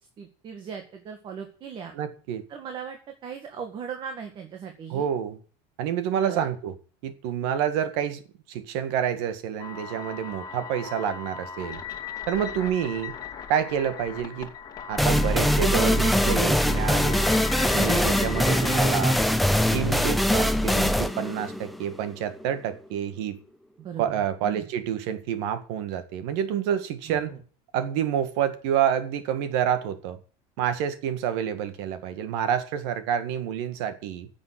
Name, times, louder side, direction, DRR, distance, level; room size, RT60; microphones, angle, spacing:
voice 1, 0.2-2.0 2.5-5.1 6.2-6.5 23.8-24.7 27.1-27.4, right 7 dB, 35° right, 1.8 m, -38 dB
voice 2, 1.9-2.4 4.9-5.4 5.8-6.8 7.0-8.2 8.5-11.8 12.3-13.1 13.5-14.5 14.9-17.3 17.7-19.2 19.7-23.4 24.0-27.3 27.7-30.2 30.6-34.3, right 9 dB, 75° right, 1.8 m, -28 dB
sound 1, 9.6-19.3, left 7 dB, 30° left, 2.3 m, -38 dB
sound 2, 15.0-22.4, equal, ahead, 0.6 m, -22 dB
10.0 x 7.6 x 9.6 m
cardioid pair, 145°, 14 cm